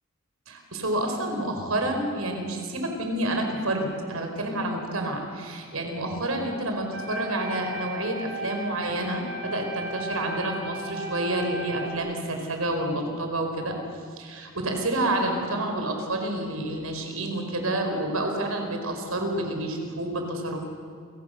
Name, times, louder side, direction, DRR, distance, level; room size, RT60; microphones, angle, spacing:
voice 1, 0.5-13.7 14.2-20.6, right 1 dB, 85° right, 3 dB, 5.1 m, -29 dB
sound 1, 6.9-11.9, right 1 dB, 60° right, 5.2 m, -36 dB
30.0 x 24.5 x 6.9 m, 2.2 s
head